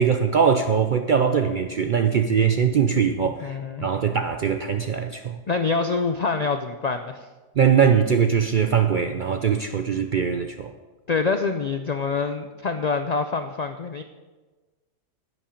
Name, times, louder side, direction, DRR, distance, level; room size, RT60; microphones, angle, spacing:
voice 1, 0.0-5.4 7.6-10.7, right 7 dB, 60° right, 7 dB, 0.5 m, -21 dB
voice 2, 3.2-3.9 5.5-7.2 11.1-14.0, left 4 dB, 70° left, 8 dB, 0.4 m, -26 dB
10.5 x 10.0 x 5.1 m, 1.3 s
omnidirectional pair, 1.4 m